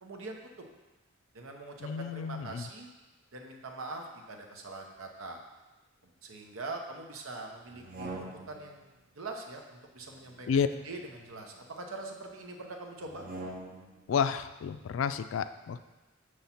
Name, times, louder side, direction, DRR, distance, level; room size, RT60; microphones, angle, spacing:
voice 1, 0.0-0.6 1.3-2.9 3.3-5.4 6.0-8.9 9.2-13.3, right 2 dB, 90° right, 2 dB, 0.9 m, -43 dB
voice 2, 1.8-2.6 10.5-10.7 14.1-15.8, left 7 dB, 70° left, 12 dB, 0.3 m, -30 dB
sound 1, 7.7-8.8 10.0-11.7 13.0-14.0, right 2 dB, 45° right, 0.8 m, -45 dB
7.0 x 3.2 x 5.7 m, 1.1 s
head